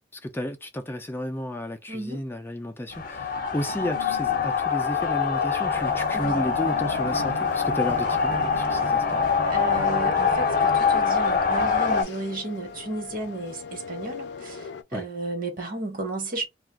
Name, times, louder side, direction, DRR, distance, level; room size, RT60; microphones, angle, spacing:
voice 1, 0.2-9.3 14.9-15.0, left 1 dB, 15° left, 0.4 m, -32 dB
voice 2, 1.9-2.2 6.1-6.5 9.5-16.5, right 2 dB, 55° right, 1.2 m, -33 dB
sound 1, 2.9-12.0, left 5 dB, 55° left, 0.7 m, -24 dB
sound 2, 4.3-14.8, left 5 dB, 85° left, 0.4 m, -35 dB
sound 3, 5.6-10.8, right 3 dB, 25° right, 0.8 m, -40 dB
2.4 x 2.3 x 3.4 m
head